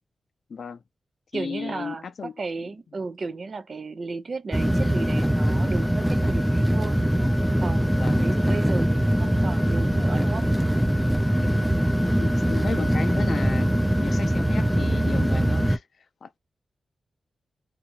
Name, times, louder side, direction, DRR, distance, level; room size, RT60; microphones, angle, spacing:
voice 1, 0.5-0.8 1.3-2.3 7.9-8.3 11.4-13.7 14.0-16.4, left 5 dB, 65° left, 0.4 m, -35 dB
voice 2, 1.3-7.0 7.6-10.5, right 4 dB, 55° right, 0.5 m, -34 dB
sound 1, 4.5-15.8, equal, 5° right, 0.4 m, -22 dB
2.8 x 2.4 x 2.7 m
cardioid pair, 60°, 0 cm